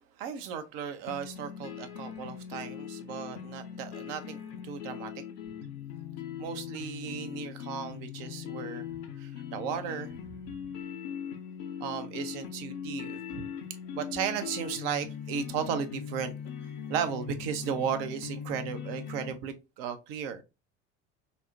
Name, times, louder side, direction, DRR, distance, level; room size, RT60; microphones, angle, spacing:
voice 1, 0.2-5.1 6.4-10.6 11.8-13.5 13.9-16.3 16.8-20.4, right 7 dB, 55° right, 0.6 m, -35 dB
sound 1, 1.1-19.3, left 8 dB, 55° left, 0.6 m, -40 dB
4.1 x 2.0 x 2.6 m
figure-of-eight pair, 70°, 35 cm